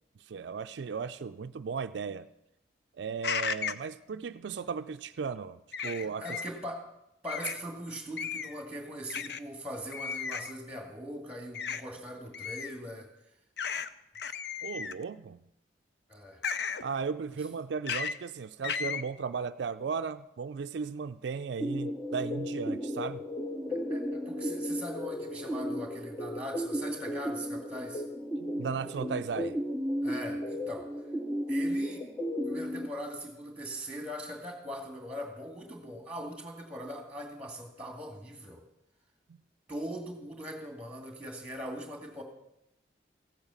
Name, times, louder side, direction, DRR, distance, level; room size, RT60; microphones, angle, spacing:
voice 1, 0.3-2.3 2.9-6.4 14.6-15.4 16.8-23.2 28.4-29.6, right 5 dB, 70° right, 9 dB, 0.4 m, -36 dB
sound 1, 3.2-3.9 5.7-6.5 7.3-7.6 8.2-8.6 9.1-9.4 9.9-10.5 11.5-11.8 12.3-12.7 13.6-13.9 14.1-15.0 16.4-16.8 17.9-18.2 18.6-19.0, left 6 dB, 60° left, 0.6 m, -34 dB
voice 2, 5.9-6.8 7.2-13.1 16.1-16.4 23.7-28.0 30.0-30.9 31.5-32.1 32.4-38.6 39.7-42.2, equal, 5° right, 3 dB, 2.2 m, -41 dB
sound 2, 21.6-32.9, equal, 10° left, 0.6 m, -34 dB
15.0 x 8.9 x 7.1 m, 0.85 s
head